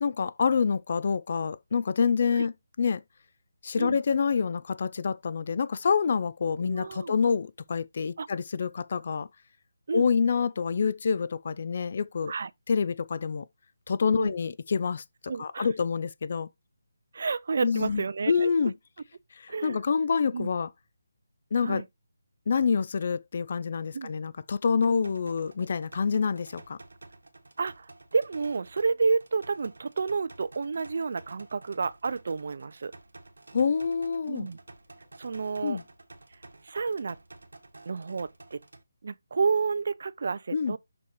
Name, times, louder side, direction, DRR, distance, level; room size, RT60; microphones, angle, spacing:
voice 1, 0.0-3.0 3.6-9.3 9.9-12.3 12.7-13.5 13.9-16.5 17.6-18.7 19.4-20.7 21.5-21.8 22.5-26.8 33.5-34.5 35.6-35.8 40.5-40.8, left 5 dB, 50° left, 0.4 m, -27 dB
voice 2, 6.6-7.1 8.2-8.3 9.9-10.1 12.3-12.5 14.2-14.3 15.3-15.7 17.1-18.5 19.5-19.8 20.3-20.5 21.6-21.9 23.9-24.1 27.6-32.9 34.3-34.6 35.2-35.8 36.6-37.2 37.9-38.6 39.0-40.8, right 4 dB, 60° right, 0.4 m, -30 dB
sound 1, 24.8-38.8, right 2 dB, 85° right, 1.3 m, -51 dB
6.1 x 5.8 x 3.0 m
figure-of-eight pair, 160°, 0 cm